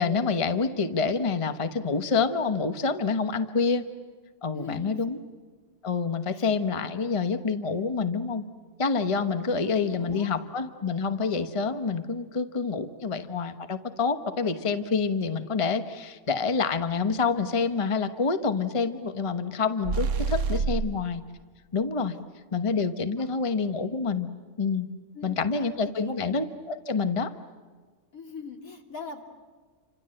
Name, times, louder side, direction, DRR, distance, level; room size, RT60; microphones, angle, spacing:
voice 1, 0.0-3.8 4.4-5.2 5.8-8.4 8.8-21.2 21.7-22.1 22.5-24.3 24.6-24.9 25.2-27.3, left 4 dB, 25° left, 9 dB, 1.1 m, -27 dB
voice 2, 4.5-5.0 6.3-6.5 9.5-10.3 23.2-23.3 25.1-26.2 28.1-29.2, left 5 dB, 75° left, 3 dB, 3.3 m, -42 dB
sound 1, 19.8-21.1, right 5 dB, 60° right, 1.3 m, -27 dB
29.5 x 26.0 x 7.8 m, 1.5 s
omnidirectional pair, 1.5 m